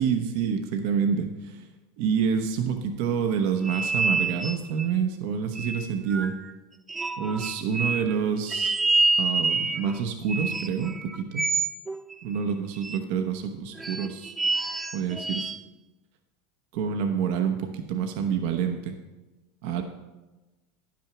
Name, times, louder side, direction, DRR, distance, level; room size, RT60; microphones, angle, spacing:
voice 1, 0.0-1.7 2.0-6.3 7.2-8.8 9.2-11.4 12.2-14.3 14.9-15.5 16.7-18.9 19.6-19.8, right 7 dB, 65° right, 5 dB, 0.8 m, -27 dB
sound 1, 3.6-4.9 5.6-6.5 6.9-8.1 8.5-10.0 10.3-12.4 12.8-13.0 13.8-15.6, right 3 dB, 15° right, 0.5 m, -27 dB
9.8 x 6.0 x 5.9 m, 1.1 s
hypercardioid pair, 100°, 0 cm